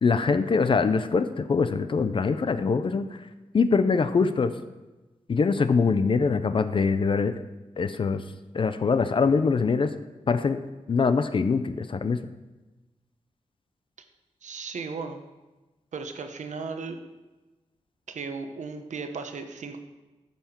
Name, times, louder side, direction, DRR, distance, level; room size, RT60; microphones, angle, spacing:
voice 1, 0.0-3.2 3.5-4.5 5.3-7.3 7.8-8.2 8.5-9.9 10.3-10.6 10.9-12.2, left 5 dB, 45° left, 10 dB, 0.5 m, -23 dB
voice 2, 14.4-15.2 15.9-17.0 18.1-19.8, right 4 dB, 70° right, 7 dB, 0.9 m, -35 dB
14.5 x 5.7 x 4.4 m, 1.1 s
wide cardioid pair, 160°, 13 cm